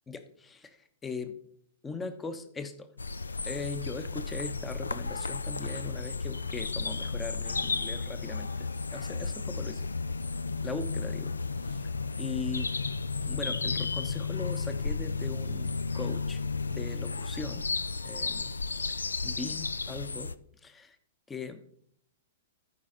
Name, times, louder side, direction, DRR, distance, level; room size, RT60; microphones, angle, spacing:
voice 1, 0.1-0.8 1.0-1.4 1.8-2.9 3.4-9.9 10.6-11.3 11.7-11.8 12.2-12.7 13.2-16.4 16.7-17.7 18.0-18.5 19.2-20.3 20.6-21.0 21.3-21.6, left 4 dB, 15° left, 11 dB, 0.9 m, -39 dB
sound 1, 3.0-20.3, left 4 dB, 80° left, 0.4 m, -33 dB
13.5 x 5.1 x 3.9 m, 0.64 s
figure-of-eight pair, 110°, 0 cm